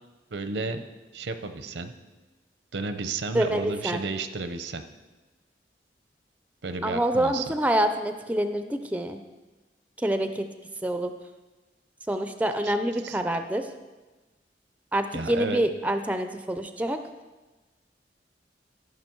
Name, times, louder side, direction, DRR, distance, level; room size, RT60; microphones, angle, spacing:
voice 1, 0.3-0.8 1.1-1.9 2.7-4.8 6.6-7.5 12.6-12.7 13.0-13.2 15.1-15.6, right 3 dB, 80° right, 9 dB, 0.7 m, -32 dB
voice 2, 3.3-4.0 6.8-9.2 10.0-10.5 10.8-11.1 12.1-13.7 14.9-17.0, right 1 dB, 10° right, 8 dB, 0.4 m, -26 dB
14.0 x 5.9 x 4.5 m, 1.2 s
head